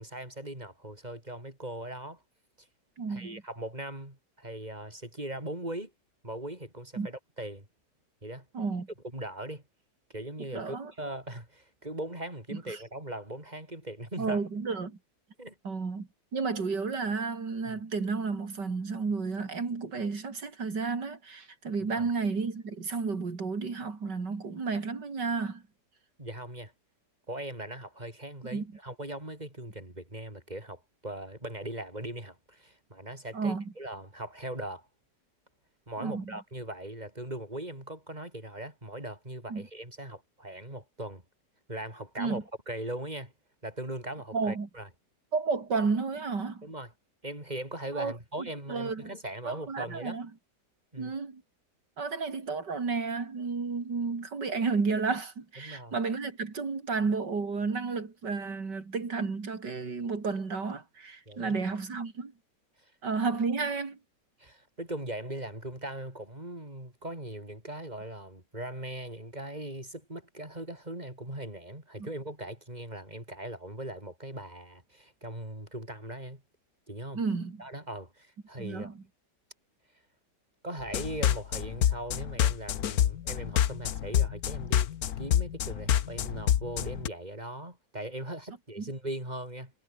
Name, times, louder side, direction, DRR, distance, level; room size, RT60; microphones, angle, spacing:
voice 1, 0.0-2.2 3.1-5.9 6.2-7.7 8.2-8.5 9.1-9.6 10.1-14.4 15.4-15.6 17.7-17.8 21.8-22.1 26.2-26.7 27.3-34.9 35.9-41.2 41.7-43.3 43.6-44.9 46.6-46.9 47.2-50.2 50.9-51.1 55.6-56.0 61.3-61.6 62.8-62.9 64.4-76.4 76.9-77.2 77.6-78.9 80.6-84.9 85.2-89.7, right 1 dB, 25° right, 7.0 m, -40 dB
voice 2, 3.0-3.4 7.0-7.1 8.5-8.9 10.5-10.9 12.5-12.8 14.2-15.0 15.6-25.6 28.5-28.7 33.3-33.7 36.0-36.4 39.5-39.7 42.2-42.4 44.3-44.7 45.3-46.7 48.0-48.1 48.4-49.1 49.4-50.3 51.0-51.4 52.0-62.3 63.0-64.0 72.0-72.1 77.1-77.6 78.6-78.9, right 4 dB, 75° right, 3.8 m, -32 dB
sound 1, 80.8-87.1, left 10 dB, 65° left, 1.3 m, -27 dB
omnidirectional pair, 1.9 m